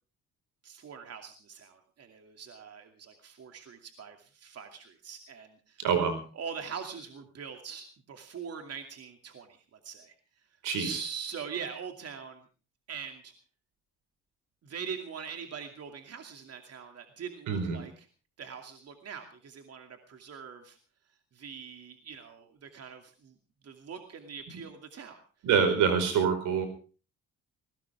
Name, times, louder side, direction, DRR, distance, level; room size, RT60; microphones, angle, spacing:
voice 1, 0.6-5.9 6.3-10.1 10.8-12.4 12.9-13.3 14.6-18.1 18.4-20.8 21.3-23.3 23.6-25.2, right 6 dB, 55° right, 5 dB, 2.6 m, -42 dB
voice 2, 5.8-6.2 10.6-11.0 17.5-17.8 25.4-26.7, right 6 dB, 90° right, 9 dB, 4.8 m, -26 dB
20.0 x 18.0 x 3.5 m, 0.37 s
cardioid pair, 90°, 30 cm